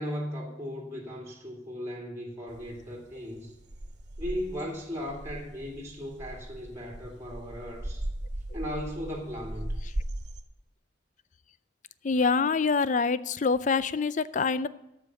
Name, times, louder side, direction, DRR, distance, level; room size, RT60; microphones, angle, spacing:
voice 1, 0.0-3.5 4.2-8.1 8.5-9.8, equal, 15° right, 1 dB, 2.3 m, -37 dB
sound 1, 2.5-10.4, right 1 dB, 65° right, 1.3 m, -38 dB
voice 2, 12.0-14.7, left 4 dB, 45° left, 16 dB, 0.5 m, -25 dB
13.0 x 5.3 x 7.3 m, 0.90 s
head